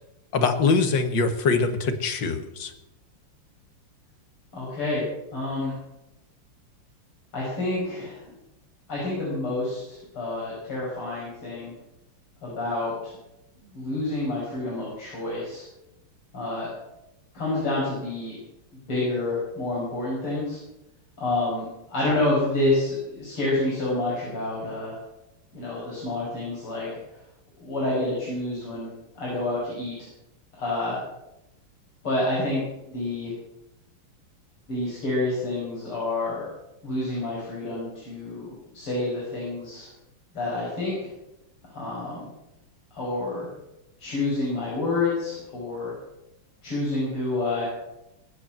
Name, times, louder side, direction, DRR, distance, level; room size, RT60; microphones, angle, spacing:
voice 1, 0.3-2.7, left 4 dB, 60° left, 7 dB, 2.1 m, -23 dB
voice 2, 4.5-5.0 5.3-5.7 7.3-8.2 8.9-11.7 12.4-13.1 13.7-15.6 16.3-16.7 17.3-18.4 18.9-20.6 21.2-25.0 25.5-26.9 27.6-28.9 29.1-29.9 30.5-31.0 32.0-33.3 34.7-36.5 36.8-39.9 40.3-41.1 41.7-42.3 42.9-43.5 44.0-45.9 46.6-47.7, left 2 dB, 85° left, -7 dB, 6.8 m, -28 dB
22.0 x 8.2 x 7.6 m, 0.91 s
omnidirectional pair, 2.4 m